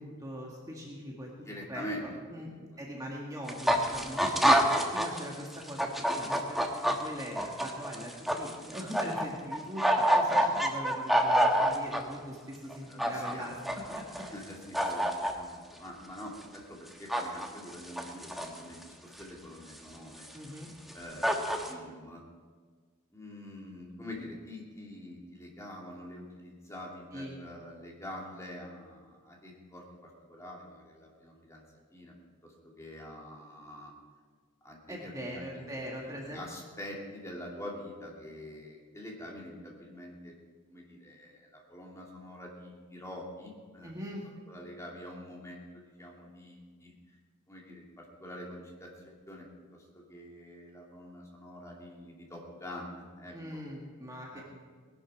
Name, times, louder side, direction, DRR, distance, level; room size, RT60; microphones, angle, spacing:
voice 1, 0.0-1.3 1.7-4.6 4.9-14.3 20.3-20.7 27.1-27.3 34.9-36.4 43.8-44.3 53.3-54.4, equal, 15° right, -2 dB, 1.8 m, -41 dB
voice 2, 1.4-2.1 2.4-2.5 12.8-13.6 13.9-20.3 20.9-22.2 23.1-31.6 31.9-32.1 32.4-33.9 34.6-40.3 40.7-43.9 44.5-46.9 47.5-53.4 54.3-54.4, left 1 dB, 15° left, -2 dB, 2.6 m, -45 dB
sound 1, 3.5-5.3 5.5-9.2 9.5-12.0 12.7-13.3 13.7-14.4 14.7-15.3 17.1-17.5 17.7-18.7 19.2-19.3 20.2-20.3 20.9-21.0 21.2-21.7, right 1 dB, ahead, 1.2 m, -27 dB
19.0 x 11.5 x 4.8 m, 1.5 s
head